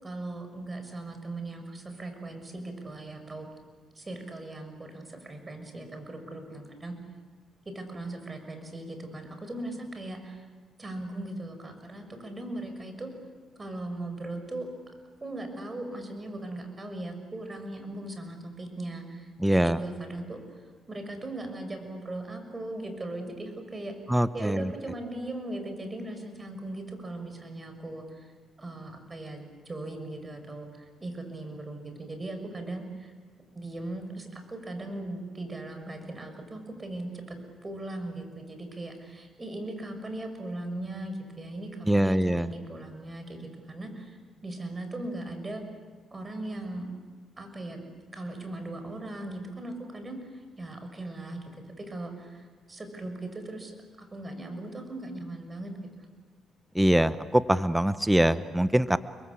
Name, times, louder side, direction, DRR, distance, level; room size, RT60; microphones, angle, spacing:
voice 1, 0.0-3.5 3.9-7.0 7.6-10.5 10.8-13.1 13.6-14.7 15.2-23.9 24.3-28.3 28.6-33.1 33.5-37.4 37.6-45.6 46.1-46.9 47.4-47.8 48.1-56.1, right 2 dB, 25° right, 6 dB, 6.3 m, -39 dB
voice 2, 19.4-19.8 24.1-24.7 41.9-42.5 56.7-59.0, right 1 dB, 5° right, 13 dB, 1.0 m, -23 dB
30.0 x 22.5 x 8.5 m, 1.5 s
cardioid pair, 90°, 0 cm